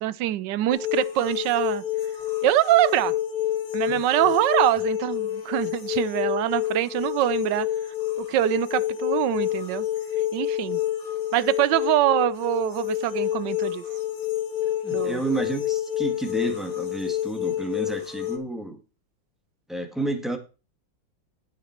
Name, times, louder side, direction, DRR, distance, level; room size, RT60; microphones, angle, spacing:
voice 1, 0.0-1.8 2.4-3.2 3.7-7.7 8.2-9.9 10.3-10.8 11.3-13.8 14.9-15.2, right 14 dB, 75° right, 1.2 m, -24 dB
sound 1, 0.7-18.4, left 12 dB, 85° left, 2.7 m, -28 dB
voice 2, 14.6-18.8 19.7-20.4, right 2 dB, ahead, 1.5 m, -31 dB
9.8 x 9.1 x 4.4 m
omnidirectional pair, 2.0 m